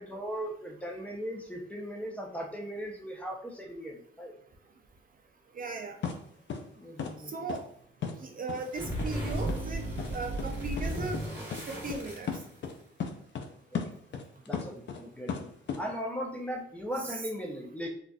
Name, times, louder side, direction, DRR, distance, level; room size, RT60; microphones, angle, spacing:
voice 1, 0.0-4.3 6.8-7.5 13.7-13.8 14.5-15.5 15.8-17.9, equal, 5° left, 0 dB, 0.6 m, -38 dB
voice 2, 5.6-6.0 7.3-7.6 8.2-9.8 10.1-11.2 11.7-12.3 17.1-17.2, right 3 dB, 45° right, 2 dB, 0.4 m, -37 dB
sound 1, 6.0-6.2 6.5-6.6 7.0-7.1 7.5-7.6 8.0-8.1 8.5-8.6 9.0-9.1 9.5-9.6 10.0-10.1 10.4-10.5 10.8-10.9 11.1-11.2 11.5-11.6 11.9-12.0 12.3-12.7 13.0-13.5 13.7-15.0 15.3-15.8, left 6 dB, 60° left, 0.5 m, -34 dB
sound 2, 8.6-12.8, right 1 dB, 10° right, 1.4 m, -35 dB
3.8 x 2.4 x 2.3 m, 0.64 s
cardioid pair, 90°, 21 cm